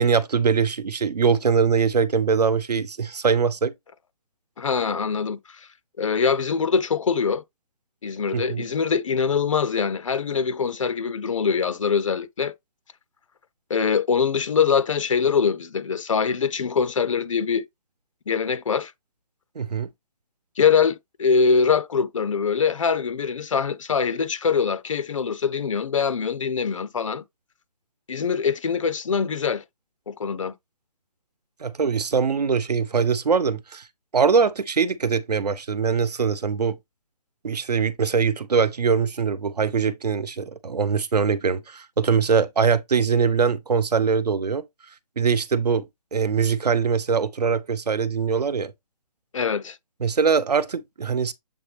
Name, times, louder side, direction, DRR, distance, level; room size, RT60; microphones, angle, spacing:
voice 1, 0.0-3.7 8.3-8.6 19.5-19.9 31.6-33.9 34.1-36.8 37.4-44.6 45.2-48.7 50.0-51.3, right 5 dB, 90° right, 1.0 m, -22 dB
voice 2, 4.6-5.7 6.0-7.4 8.0-12.5 13.7-17.7 18.3-18.9 20.6-27.2 28.1-29.6 30.1-30.5 49.3-49.8, left 6 dB, 55° left, 0.9 m, -23 dB
7.8 x 3.7 x 3.4 m
hypercardioid pair, 170°, 20 cm